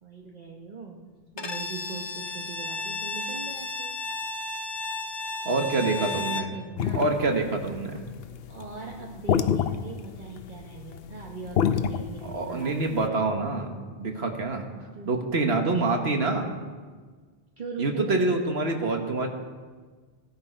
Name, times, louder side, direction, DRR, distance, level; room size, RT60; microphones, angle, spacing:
voice 1, 0.0-4.0 5.5-7.1 8.5-13.2 15.0-15.2 15.7-16.2 17.6-18.2 19.2-19.3, right 4 dB, 50° right, -1 dB, 1.2 m, -41 dB
Bowed string instrument, 1.4-6.6, left 3 dB, 30° left, 0.6 m, -33 dB
voice 2, 5.4-6.5 6.9-8.1 12.2-14.7 15.0-16.5 17.8-19.3, right 3 dB, 75° right, 4 dB, 1.6 m, -26 dB
sound 1, 6.8-13.1, left 8 dB, 70° left, 0.8 m, -27 dB
16.5 x 11.0 x 4.4 m, 1.5 s
omnidirectional pair, 1.1 m